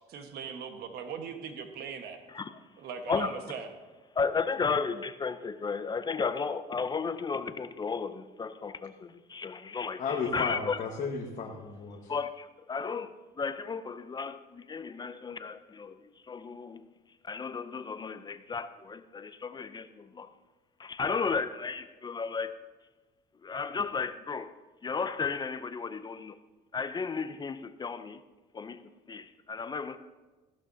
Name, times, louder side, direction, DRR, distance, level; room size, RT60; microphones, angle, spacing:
voice 1, 0.0-2.2 2.8-3.7, right 6 dB, 70° right, 5 dB, 1.3 m, -39 dB
voice 2, 4.1-10.8 12.1-16.9 17.2-20.3 20.8-22.6 23.4-24.5 24.8-26.4 26.7-28.2 28.5-30.0, left 5 dB, 25° left, 11 dB, 0.5 m, -34 dB
voice 3, 10.0-12.1, left 5 dB, 50° left, -1 dB, 1.3 m, -34 dB
15.0 x 12.0 x 2.7 m, 1.2 s
cardioid pair, 110°, 17 cm